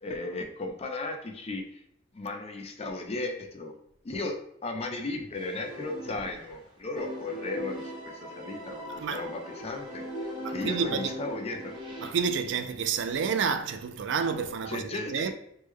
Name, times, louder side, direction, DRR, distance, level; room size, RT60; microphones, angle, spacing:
voice 1, 0.0-1.8 2.1-3.7 4.0-11.7 14.7-15.3, left 2 dB, 30° left, 0.4 m, -36 dB
sound 1, 5.4-6.6 7.0-12.1, equal, 25° right, 0.7 m, -39 dB
voice 2, 8.9-9.3 10.4-11.2 12.0-15.3, right 6 dB, 65° right, 0.3 m, -30 dB
3.1 x 2.1 x 3.5 m
head